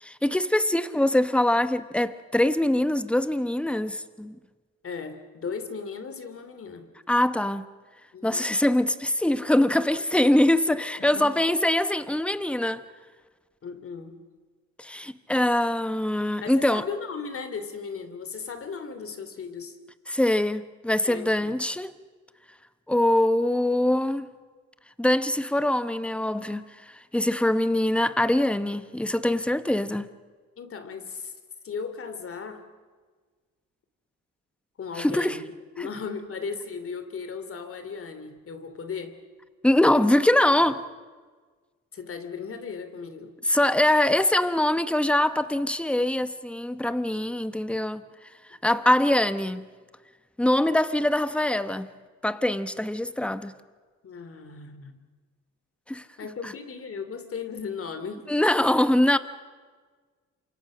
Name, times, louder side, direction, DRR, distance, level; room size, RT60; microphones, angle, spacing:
voice 1, 0.0-4.4 7.1-7.7 8.2-12.8 14.8-16.8 20.1-21.9 22.9-24.3 25.0-30.1 35.0-35.4 35.8-35.9 39.6-40.8 43.5-48.0 48.6-49.7 50.4-51.9 52.2-53.5 55.9-56.1 56.4-56.5 58.3-59.2, left 1 dB, 5° left, 1.1 m, -23 dB
voice 2, 4.8-6.9 8.1-8.5 11.0-11.3 13.6-14.2 16.4-19.8 21.0-21.5 30.6-31.3 31.6-32.7 34.8-35.5 35.8-39.2 41.9-43.4 54.0-55.0 56.2-58.3, left 5 dB, 45° left, 2.9 m, -36 dB
28.0 x 25.0 x 6.3 m
cardioid pair, 90°, 30 cm